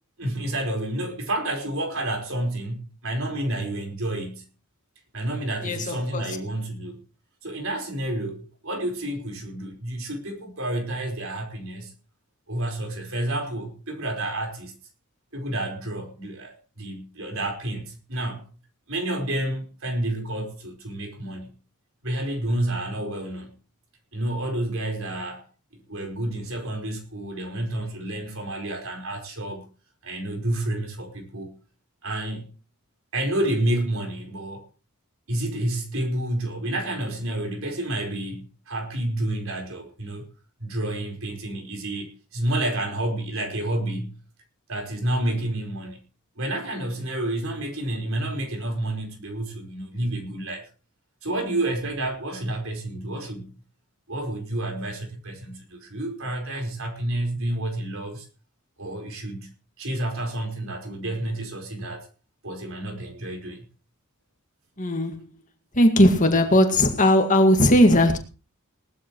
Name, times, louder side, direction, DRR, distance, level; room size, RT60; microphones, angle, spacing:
voice 1, 0.2-4.5 5.1-7.0 7.4-11.9 12.5-14.7 15.3-18.4 18.9-21.5 22.0-23.5 24.1-25.4 25.7-29.7 30.0-31.5 32.0-32.5 33.1-34.6 35.3-40.2 40.6-44.2 44.7-46.0 46.4-50.7 51.2-53.6 54.1-58.3 58.8-59.5 59.8-62.1 62.4-63.7, right 1 dB, 65° right, 4.8 m, -29 dB
voice 2, 5.6-6.2 64.8-65.2 65.7-68.2, left 1 dB, 35° left, 2.0 m, -18 dB
19.0 x 12.5 x 3.2 m
head